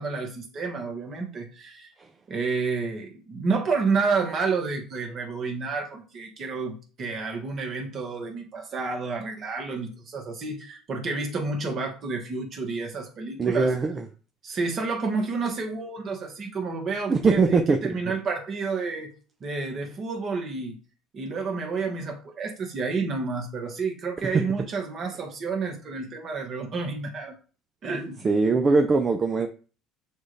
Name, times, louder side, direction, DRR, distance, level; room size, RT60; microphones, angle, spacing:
voice 1, 0.0-1.9 2.3-13.7 14.4-19.1 19.4-20.8 21.1-27.3 27.8-28.3, right 4 dB, 45° right, 1.4 m, -30 dB
voice 2, 13.4-14.0 17.1-17.9 28.2-29.5, right 4 dB, 30° right, 0.5 m, -21 dB
6.2 x 2.5 x 3.2 m
supercardioid pair, 80°, 0 cm